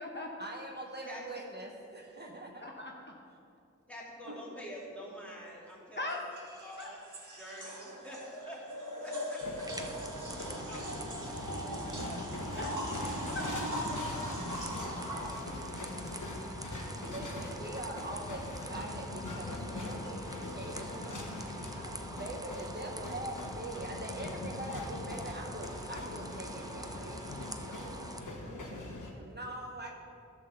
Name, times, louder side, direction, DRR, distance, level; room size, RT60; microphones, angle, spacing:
voice 1, 0.4-2.7 17.0-18.4 18.7-29.9, right 1 dB, 35° right, -1 dB, 0.9 m, -43 dB
voice 2, 2.6-3.2 6.0-6.2 6.8-6.9 12.6-13.6 17.2-17.3, left 2 dB, 35° left, -1 dB, 0.9 m, -40 dB
voice 3, 3.9-6.1 6.6-7.0 7.4-10.0 10.6-10.9 11.2-12.7, equal, 5° left, -6 dB, 2.5 m, -48 dB
sound 1, 4.2-4.4 6.1-15.3, equal, 80° right, 1.5 m, -40 dB
sound 2, 9.4-29.1, left 2 dB, 85° left, 1.0 m, -42 dB
sound 3, 9.6-28.2, right 2 dB, 10° right, 0.5 m, -46 dB
11.5 x 4.0 x 6.8 m, 2.5 s
wide cardioid pair, 50°, 30 cm